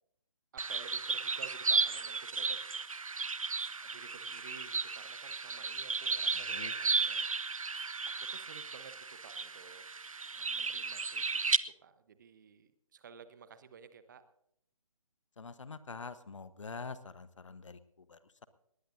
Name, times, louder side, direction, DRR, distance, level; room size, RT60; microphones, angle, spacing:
voice 1, 0.5-2.6 3.8-7.3 7.7-7.9 8.2-9.8 10.2-14.2, right 7 dB, 35° right, 12 dB, 1.0 m, -54 dB
sound 1, 0.6-11.6, right 4 dB, 70° right, 0.7 m, -34 dB
voice 2, 6.3-6.7 15.4-18.5, left 4 dB, 60° left, 14 dB, 1.1 m, -46 dB
19.5 x 19.0 x 2.7 m, 0.73 s
figure-of-eight pair, 145°, 18 cm